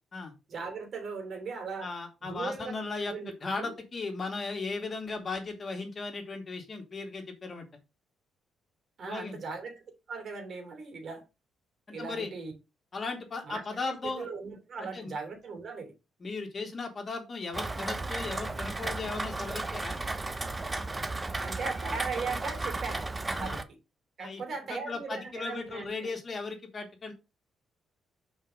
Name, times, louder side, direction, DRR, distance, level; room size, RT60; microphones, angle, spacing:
voice 1, 0.5-1.9 2.2-2.7 3.1-3.3 3.6-3.7 9.0-9.7 10.1-11.2 11.9-12.5 13.4-15.9 21.4-23.0 23.4-23.6 24.2-26.1, right 4 dB, 55° right, 3.0 m, -38 dB
voice 2, 1.8-7.7 9.0-9.4 12.0-12.3 12.9-14.3 14.8-15.1 16.2-20.0 23.3-23.6 24.2-24.4 24.7-27.1, left 3 dB, 40° left, 2.4 m, -37 dB
Rain, 17.5-23.6, right 2 dB, 20° right, 0.8 m, -34 dB
5.5 x 5.0 x 5.1 m
cardioid pair, 90°, 0 cm